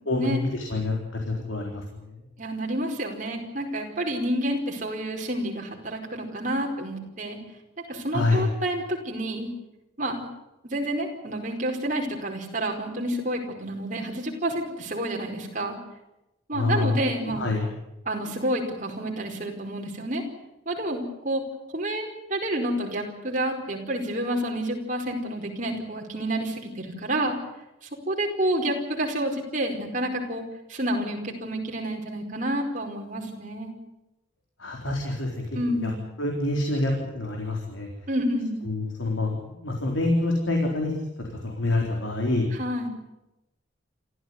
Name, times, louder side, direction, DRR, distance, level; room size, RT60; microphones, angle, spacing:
voice 1, 0.1-2.1 8.1-8.5 16.5-17.0 17.2-17.7 34.6-35.5 35.8-35.9 36.2-37.9 38.7-40.9 41.2-42.5, left 2 dB, 85° left, 1 dB, 4.0 m, -26 dB
voice 2, 2.4-7.4 7.9-9.5 10.0-10.3 10.6-15.8 16.5-17.5 18.1-20.2 20.7-21.4 21.7-27.4 28.1-30.4 30.7-33.7 35.5-36.0 38.1-38.6 42.6-42.9, right 1 dB, 40° right, 1 dB, 4.8 m, -29 dB
28.0 x 14.5 x 9.5 m, 0.92 s
head